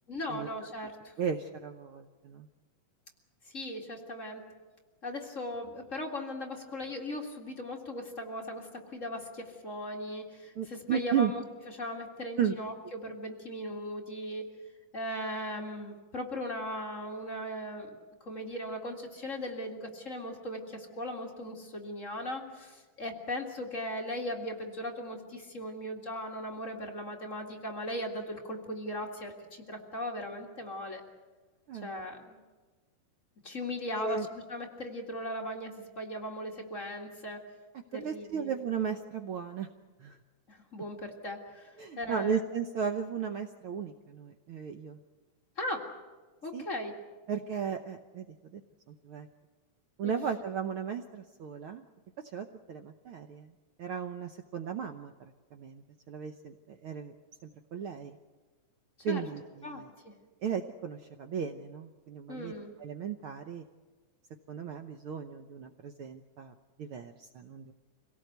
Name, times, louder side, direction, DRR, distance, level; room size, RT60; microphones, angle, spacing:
voice 1, 0.1-1.1 3.5-4.5 5.0-11.4 11.8-14.5 14.9-17.9 18.2-31.0 31.8-32.4 33.4-37.4 37.9-38.5 40.5-42.4 45.6-45.9 46.4-47.0 50.0-50.2 59.0-59.2 59.6-60.1 62.3-62.7, left 1 dB, 30° left, 0 dB, 2.0 m, -38 dB
voice 2, 1.2-2.5 10.6-11.3 12.4-12.5 31.7-31.9 33.9-34.3 37.9-39.7 40.0-40.2 41.8-45.0 46.5-46.7 47.3-48.6 48.9-49.3 50.0-51.8 52.2-53.5 53.8-57.1 57.4-58.2 59.0-59.9 60.4-63.7 64.5-67.7, right 7 dB, 90° right, 6 dB, 1.2 m, -35 dB
26.0 x 17.5 x 8.0 m, 1.3 s
omnidirectional pair, 3.6 m